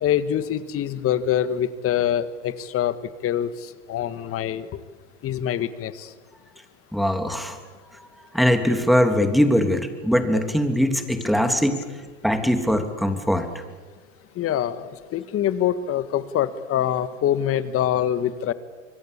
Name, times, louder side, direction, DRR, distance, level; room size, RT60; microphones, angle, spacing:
voice 1, 0.0-2.9 3.2-3.5 3.9-4.7 5.2-5.9 14.4-14.8 15.1-18.5, left 10 dB, 35° left, 13 dB, 1.8 m, -24 dB
voice 2, 6.9-7.6 8.3-11.8 12.2-13.5, equal, ahead, 6 dB, 3.0 m, -21 dB
26.5 x 22.5 x 8.5 m, 1.4 s
hypercardioid pair, 100°, 37 cm